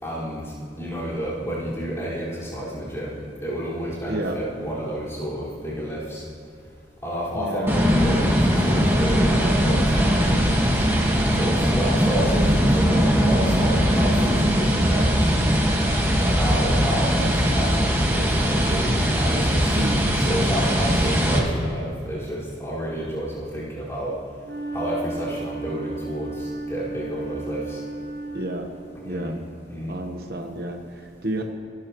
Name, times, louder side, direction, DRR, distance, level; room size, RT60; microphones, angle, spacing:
voice 1, 0.0-6.2 7.0-10.9 11.3-15.3 16.2-19.7 20.1-24.1 24.7-27.8 29.0-29.3 29.7-29.9, equal, 15° left, -10 dB, 4.8 m, -30 dB
voice 2, 7.3-7.8 19.8-20.1 28.3-28.7 29.0-29.4 29.9-31.4, right 1 dB, 60° right, 3 dB, 1.1 m, -30 dB
sound 1, 7.7-21.4, equal, 15° right, 1.6 m, -20 dB
Wind instrument woodwind instrument, 24.4-28.9, right 3 dB, 85° right, 3.3 m, -34 dB
27.5 x 13.0 x 3.1 m, 2.2 s
head